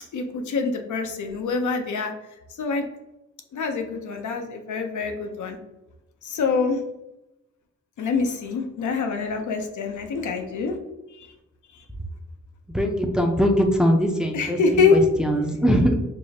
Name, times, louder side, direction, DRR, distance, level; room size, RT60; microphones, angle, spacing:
voice 1, 0.1-2.1 2.6-2.8 3.5-5.6 6.2-6.8 8.0-10.8 11.2-11.3 14.3-15.0, left 4 dB, 90° left, 4 dB, 0.6 m, -25 dB
voice 2, 12.7-16.0, equal, 5° right, 3 dB, 0.4 m, -21 dB
4.7 x 2.4 x 2.7 m, 0.94 s
wide cardioid pair, 115°, 29 cm